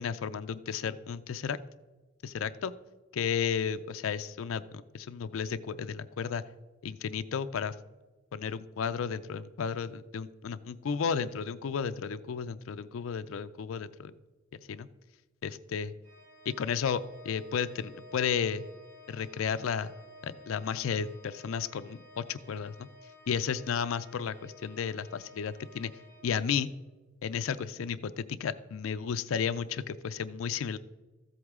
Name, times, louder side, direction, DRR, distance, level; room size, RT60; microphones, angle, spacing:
voice 1, 0.0-1.6 2.2-2.7 3.1-6.4 6.8-7.7 8.3-14.1 14.5-14.9 15.4-15.9 16.5-18.7 19.1-19.9 20.2-22.9 23.3-25.9 26.2-26.7 27.2-30.8, left 7 dB, 85° left, 12 dB, 0.4 m, -33 dB
Organ, 16.0-26.9, left 1 dB, 35° right, 3.6 m, -54 dB
14.0 x 7.9 x 3.6 m, 1.2 s
head